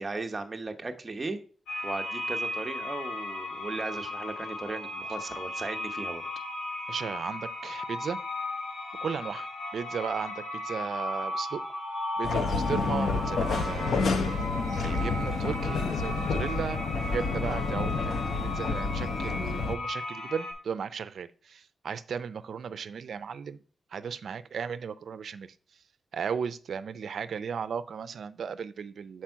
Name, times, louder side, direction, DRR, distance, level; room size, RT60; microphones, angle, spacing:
voice 1, 0.0-1.4 1.8-6.2, right 3 dB, 30° right, 0.8 m, -36 dB
sound 1, 1.7-20.5, left 1 dB, 90° left, 2.7 m, -36 dB
voice 2, 6.9-8.2 9.0-11.6 12.2-14.2 14.8-16.8 17.1-23.6 23.9-25.5 26.1-29.2, right 6 dB, 75° right, 0.4 m, -35 dB
sound 2, 12.2-19.8, left 4 dB, 70° left, 0.6 m, -29 dB
7.4 x 4.4 x 4.5 m
wide cardioid pair, 120°, 0 cm